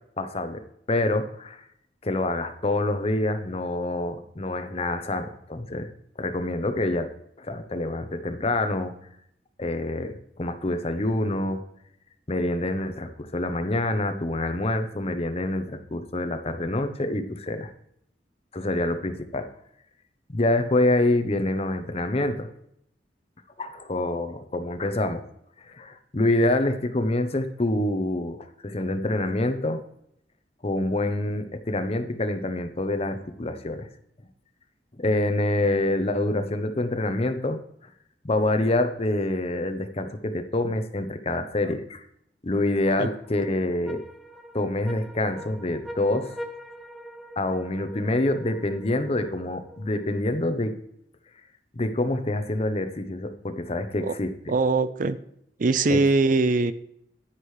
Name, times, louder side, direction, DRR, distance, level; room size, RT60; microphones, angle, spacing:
voice 1, 0.2-1.6 2.0-5.9 6.2-7.1 7.4-8.9 9.6-11.6 12.3-17.7 18.5-19.5 20.3-22.5 23.6-25.2 25.7-29.8 30.6-33.9 35.0-37.6 38.2-42.0 42.4-44.0 44.5-46.4 47.4-50.7 51.7-54.5 55.9-56.0, left 2 dB, 35° left, 9 dB, 0.8 m, -26 dB
sound 1, 42.9-50.4, equal, ahead, 0.8 m, -43 dB
voice 2, 54.5-55.2 55.6-56.7, right 3 dB, 50° right, 13 dB, 0.5 m, -22 dB
10.0 x 10.0 x 3.2 m, 0.74 s
head